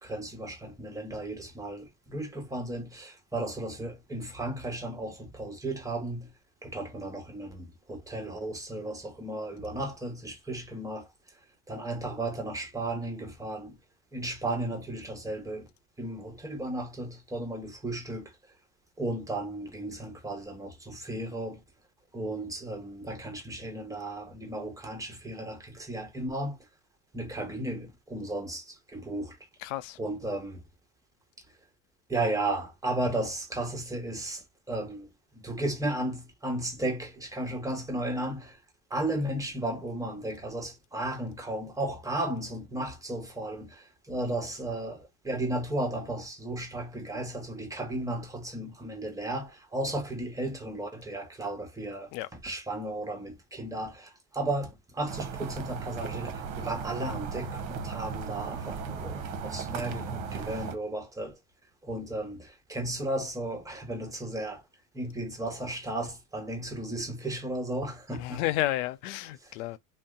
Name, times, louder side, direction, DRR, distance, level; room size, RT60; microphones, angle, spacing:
voice 1, 0.0-6.3 6.6-11.1 11.7-13.8 14.1-15.7 16.0-18.3 19.0-21.6 22.1-26.7 27.1-29.4 30.0-30.6 32.1-38.6 38.9-61.4 61.8-64.6 64.9-68.4, right 1 dB, 10° right, 1.0 m, -34 dB
voice 2, 29.6-30.0 52.1-52.3 68.1-69.8, left 15 dB, 70° left, 0.6 m, -31 dB
sound 1, 55.1-60.8, right 6 dB, 50° right, 0.9 m, -36 dB
2.7 x 2.2 x 3.6 m
supercardioid pair, 100°, 40 cm